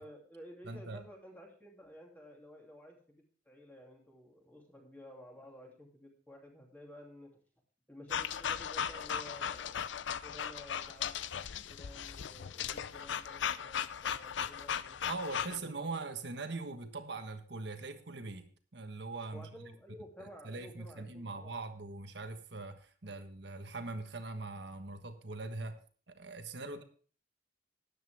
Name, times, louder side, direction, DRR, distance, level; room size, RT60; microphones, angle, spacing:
voice 1, 0.0-7.4 7.9-9.9 10.2-11.2 11.7-15.9 19.3-21.6 23.0-23.2 26.6-26.8, equal, 10° left, 0 dB, 2.9 m, -53 dB
voice 2, 0.6-1.1 15.1-19.7 20.2-25.8 26.1-26.8, right 3 dB, 60° right, 7 dB, 1.4 m, -42 dB
sound 1, 8.1-15.6, left 8 dB, 75° left, 0.5 m, -37 dB
13.0 x 10.5 x 3.5 m, 0.42 s
head